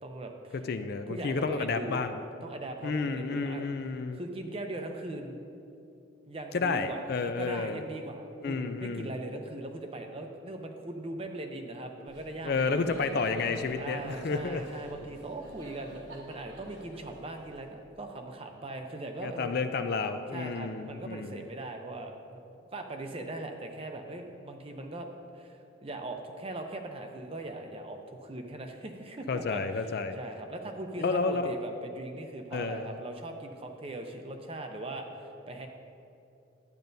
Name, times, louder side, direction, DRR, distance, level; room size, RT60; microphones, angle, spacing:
voice 1, 0.0-0.5 1.1-2.0 2.4-3.7 4.1-5.4 6.3-12.9 13.8-19.6 20.3-29.6 30.2-35.7, right 2 dB, 30° right, 4 dB, 0.6 m, -40 dB
voice 2, 0.5-2.2 2.8-4.2 6.5-7.8 8.4-9.2 12.4-14.7 19.2-21.4 29.3-30.2 31.0-31.5 32.5-32.9, left 4 dB, 50° left, 9 dB, 0.4 m, -31 dB
Laughter, 12.1-17.9, right 1 dB, 75° right, 1.2 m, -47 dB
12.0 x 8.8 x 2.7 m, 2.7 s
head